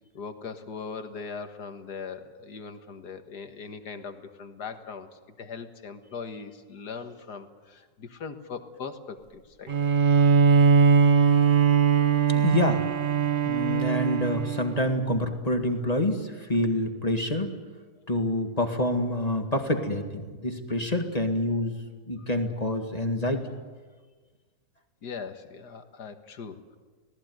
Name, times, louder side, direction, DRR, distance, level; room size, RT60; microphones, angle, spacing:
voice 1, 0.0-9.7 13.3-13.5 25.0-26.8, left 5 dB, 70° left, 7 dB, 2.1 m, -40 dB
Bowed string instrument, 9.7-15.1, right 6 dB, 40° right, 0.8 m, -21 dB
voice 2, 12.3-12.8 13.4-17.5 18.1-21.8 22.1-23.4, left 1 dB, 25° left, 5 dB, 1.8 m, -27 dB
25.0 x 18.0 x 9.4 m, 1.4 s
omnidirectional pair, 1.8 m